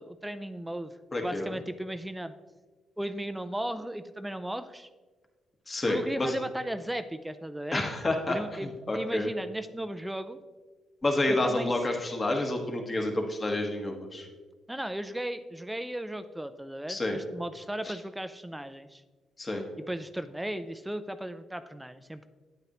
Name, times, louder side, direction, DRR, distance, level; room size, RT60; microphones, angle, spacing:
voice 1, 0.0-0.9 1.2-2.3 3.0-4.9 5.9-7.8 8.3-10.4 11.3-11.7 14.7-19.0 19.9-22.3, right 1 dB, 5° right, 11 dB, 0.3 m, -36 dB
voice 2, 1.1-1.6 5.7-6.3 7.7-9.3 11.0-14.3 16.9-17.2 17.8-18.0 19.4-19.6, left 2 dB, 30° left, 2 dB, 1.3 m, -29 dB
8.9 x 8.8 x 3.0 m, 1.3 s
cardioid pair, 90°, 0 cm